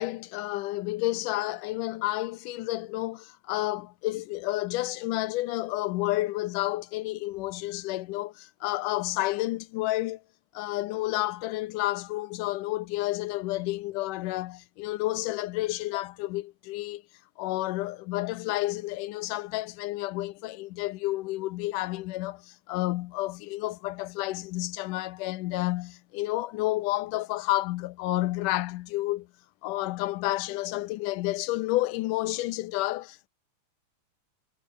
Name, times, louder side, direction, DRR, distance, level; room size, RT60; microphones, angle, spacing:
voice 1, 0.0-10.2 10.5-17.0 17.4-29.3 29.6-33.3, left 18 dB, 85° left, 2.2 m, -30 dB
omnidirectional pair, 3.7 m